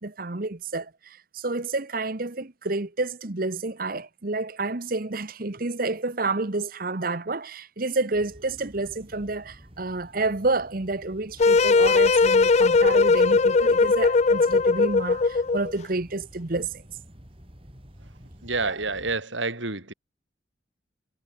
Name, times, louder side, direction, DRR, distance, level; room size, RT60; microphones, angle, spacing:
voice 1, 0.0-16.8 18.6-18.7, right 3 dB, 45° right, 1.2 m, -29 dB
sound 1, 8.1-19.2, equal, 30° right, 6.7 m, -50 dB
sound 2, 11.4-15.7, left 4 dB, 35° left, 0.4 m, -19 dB
voice 2, 18.4-19.9, right 3 dB, 75° right, 4.7 m, -28 dB
head